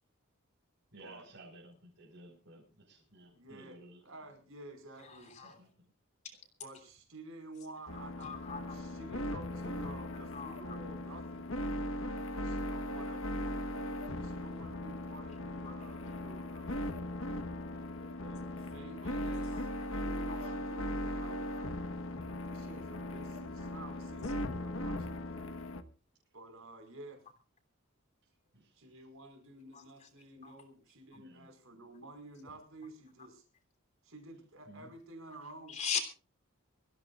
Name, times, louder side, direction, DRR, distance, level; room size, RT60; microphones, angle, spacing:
voice 1, 0.9-4.0 5.4-5.9 17.7-17.8 28.5-28.8 31.1-31.5 34.7-34.9, right 2 dB, 55° right, 5.2 m, -55 dB
voice 2, 3.3-5.3 6.6-11.5 12.4-16.8 18.0-21.5 22.4-25.6 26.3-27.2 28.8-33.4 34.0-35.8, right 2 dB, 70° right, 5.1 m, -51 dB
voice 3, 5.0-5.6 6.2-6.3 8.2-8.8 9.8-10.6 13.4-13.5 15.6-15.7 16.1-16.2 19.5-19.9 20.3-20.6 21.5-21.7 24.2-24.3 29.7-30.1 30.4-30.5 35.7-36.0, left 7 dB, 35° left, 3.1 m, -41 dB
sound 1, 7.9-25.8, left 1 dB, 65° left, 1.3 m, -38 dB
25.0 x 15.5 x 2.4 m
head